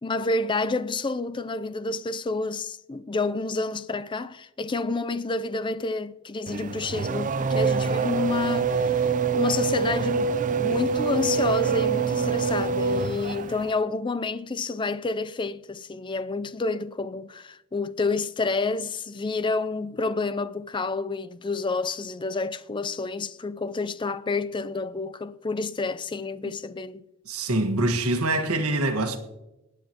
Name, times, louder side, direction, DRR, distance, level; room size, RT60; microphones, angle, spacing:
voice 1, 0.0-10.3 10.6-27.0, left 3 dB, 20° left, 0.4 m, -29 dB
Race car auto racing / Accelerating revving vroom, 6.5-13.7, right 5 dB, 35° right, 0.5 m, -25 dB
voice 2, 27.2-29.2, right 2 dB, 80° right, 1.5 m, -25 dB
20.5 x 9.0 x 2.9 m
head